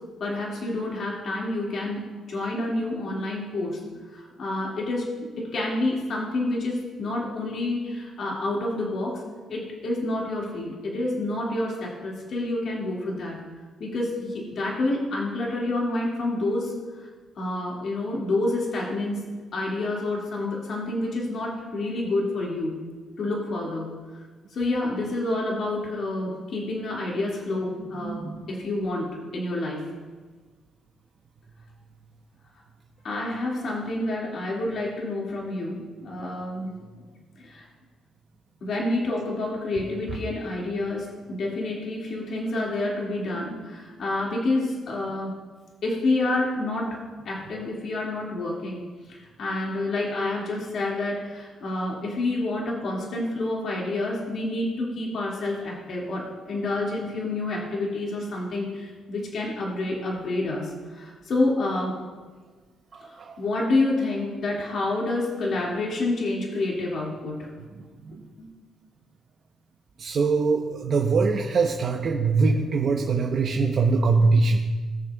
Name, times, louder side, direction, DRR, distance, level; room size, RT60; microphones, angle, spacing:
voice 1, 0.2-2.0 2.3-3.8 4.1-9.2 9.5-13.4 13.8-16.7 17.4-19.2 19.5-22.8 23.2-23.9 24.5-29.9 33.0-36.7 37.4-37.7 38.6-45.3 45.8-48.8 49.1-62.0 63.0-67.5 68.4-68.5, left 2 dB, 60° left, -3 dB, 2.2 m, -28 dB
voice 2, 28.0-28.4 63.2-63.3 68.0-68.2 70.0-74.7, right 4 dB, 50° right, 0 dB, 0.9 m, -22 dB
19.5 x 6.6 x 2.4 m, 1.4 s
cardioid pair, 90°, 0 cm